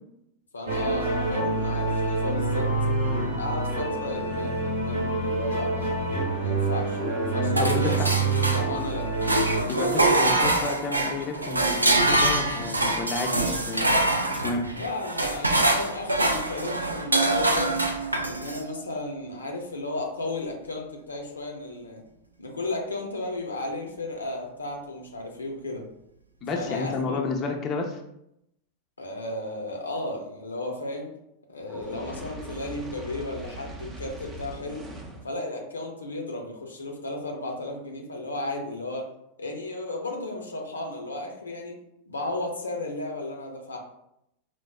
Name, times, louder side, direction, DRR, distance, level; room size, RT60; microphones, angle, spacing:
voice 1, 0.5-2.7 3.3-6.1 6.4-9.1 14.7-17.7 18.2-22.0 22.4-25.8 26.5-27.2 29.0-31.1 31.5-34.9 35.2-39.1 39.4-43.8, left 2 dB, 75° left, 1 dB, 0.5 m, -34 dB
sound 1, 0.7-9.6, right 3 dB, 65° right, 0.8 m, -26 dB
voice 2, 7.6-8.1 9.7-13.9 14.4-14.7 26.4-28.0, left 3 dB, 30° left, 1 dB, 0.4 m, -31 dB
sound 2, 7.6-8.9 9.2-18.6, right 2 dB, 80° right, 0.3 m, -24 dB
Fire, 31.7-35.3, right 2 dB, 20° right, 0.5 m, -41 dB
4.5 x 2.0 x 2.3 m, 0.79 s
figure-of-eight pair, 90°, 0 cm